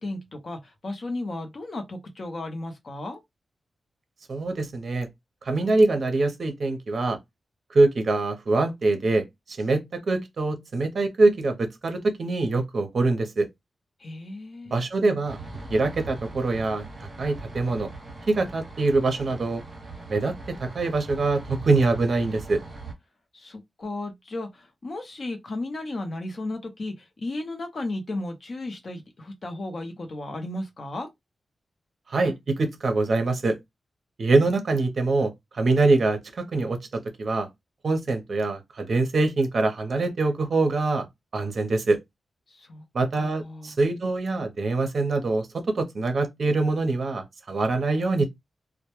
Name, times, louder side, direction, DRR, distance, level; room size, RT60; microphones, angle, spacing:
voice 1, 0.0-3.2 14.0-14.8 23.3-31.1 42.5-42.8 43.2-43.7, left 2 dB, 45° left, 0.6 m, -34 dB
voice 2, 4.3-5.1 5.5-7.2 7.7-9.2 9.6-13.5 14.7-15.4 15.7-16.8 17.2-17.9 18.3-19.6 20.1-20.3 20.6-22.6 32.1-33.6 34.2-37.5 37.8-41.1 41.3-42.0 42.9-48.2, right 3 dB, 50° right, 0.6 m, -24 dB
sound 1, 15.2-22.9, right 3 dB, 35° right, 0.9 m, -40 dB
2.1 x 2.1 x 2.9 m
wide cardioid pair, 140°, 0 cm